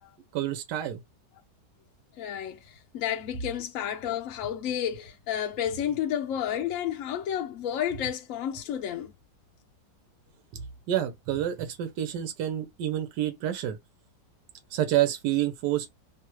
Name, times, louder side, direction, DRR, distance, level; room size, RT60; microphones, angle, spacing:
voice 1, 0.3-1.0 10.5-13.8 14.7-15.9, right 12 dB, 75° right, 1.2 m, -28 dB
voice 2, 2.1-9.1, left 10 dB, 80° left, 0.7 m, -31 dB
3.1 x 2.3 x 3.0 m
omnidirectional pair, 1.9 m